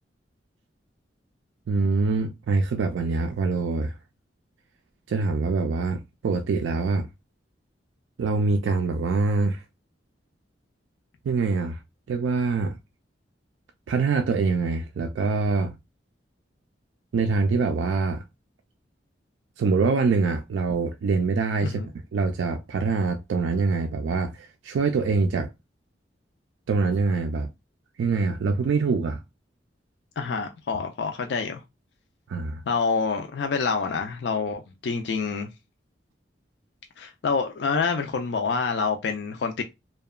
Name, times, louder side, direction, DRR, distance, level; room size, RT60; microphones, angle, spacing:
voice 1, 1.7-3.9 5.1-7.1 8.2-9.6 11.2-11.8 12.1-12.8 13.9-15.7 17.1-18.2 19.6-21.8 22.1-25.5 26.7-27.5 28.0-29.2 32.3-32.6, right 4 dB, 90° right, 0.3 m, -24 dB
voice 2, 30.2-31.6 32.7-35.5 37.0-39.6, left 5 dB, 65° left, 0.4 m, -27 dB
2.8 x 2.2 x 2.2 m
head